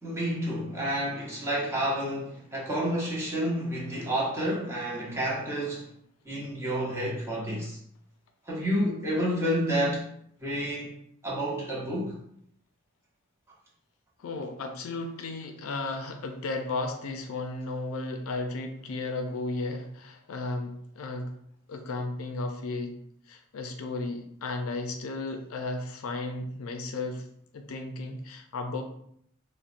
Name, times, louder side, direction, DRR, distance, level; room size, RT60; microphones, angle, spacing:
voice 1, 0.0-5.9 6.2-7.8 8.5-10.1 10.4-10.9 11.2-12.2, equal, 15° right, 0.8 m, -29 dB
voice 2, 14.2-21.3 21.7-23.0 23.3-27.2 27.5-28.8, left 2 dB, 70° left, 0.4 m, -34 dB
3.9 x 2.1 x 2.5 m
head